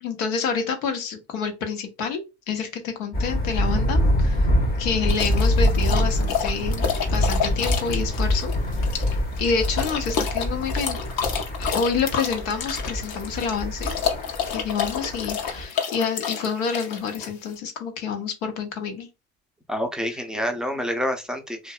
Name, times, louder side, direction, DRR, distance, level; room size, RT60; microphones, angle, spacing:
voice 1, 0.0-2.2 2.5-4.5 4.8-8.5 9.4-11.0 11.6-13.9 14.5-19.1 20.1-20.2, left 5 dB, 80° left, 0.9 m, -28 dB
Thunder, 3.1-15.7, equal, 25° left, 0.8 m, -25 dB
sound 1, 5.1-17.6, left 7 dB, 55° left, 0.8 m, -29 dB
voice 2, 19.7-21.7, equal, ahead, 0.5 m, -28 dB
2.6 x 2.3 x 2.3 m
hypercardioid pair, 80°, 40 cm